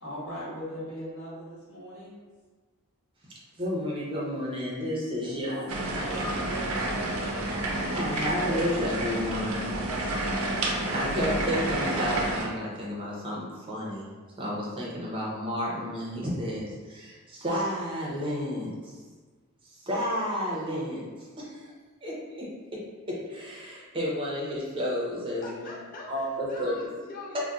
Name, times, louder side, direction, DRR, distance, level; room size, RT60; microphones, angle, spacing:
voice 1, 0.0-2.1 3.5-3.6 5.2-6.7, equal, 65° left, -9 dB, 1.3 m, -40 dB
voice 2, 3.6-6.3 7.4-9.7 10.9-14.0 14.4-19.0 19.7-21.0 21.4-21.7 22.0-22.5 22.7-22.8 23.1-25.7 26.1-26.8 27.3-27.4, equal, 25° right, -5 dB, 0.6 m, -31 dB
sound 1, 5.7-12.5, right 1 dB, 75° right, 0.5 m, -30 dB
voice 3, 25.4-27.4, left 3 dB, 40° left, -4 dB, 0.6 m, -42 dB
2.5 x 2.1 x 3.4 m, 1.4 s
head